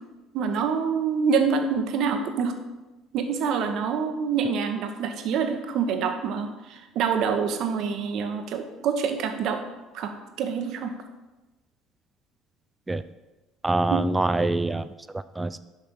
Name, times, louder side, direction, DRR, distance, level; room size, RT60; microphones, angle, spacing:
voice 1, 0.3-2.6 3.1-9.6 9.9-11.0 13.9-14.1, right 6 dB, 60° right, 7 dB, 1.0 m, -26 dB
voice 2, 13.6-15.6, right 2 dB, 15° right, 14 dB, 0.5 m, -25 dB
6.7 x 5.4 x 6.2 m, 1.1 s
hypercardioid pair, 60°, 0 cm